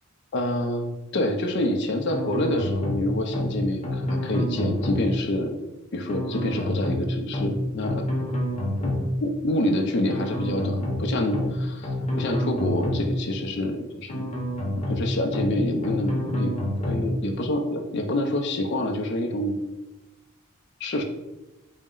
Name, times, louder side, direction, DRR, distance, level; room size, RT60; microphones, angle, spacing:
voice 1, 0.3-5.6 5.9-8.0 8.8-8.9 9.2-14.3 14.9-16.5 16.8-19.6 20.8-21.0, left 1 dB, 50° left, 5 dB, 0.4 m, -27 dB
sound 1, 2.1-3.0 3.3-3.6 3.8-5.1 6.1-7.0 7.3-7.6 7.8-9.1 10.1-11.0 11.3-11.6 11.8-13.1 14.1-15.0 15.3-15.6 15.8-17.1, left 1 dB, 30° left, 0.7 m, -28 dB
4.0 x 2.0 x 3.7 m, 1.0 s
head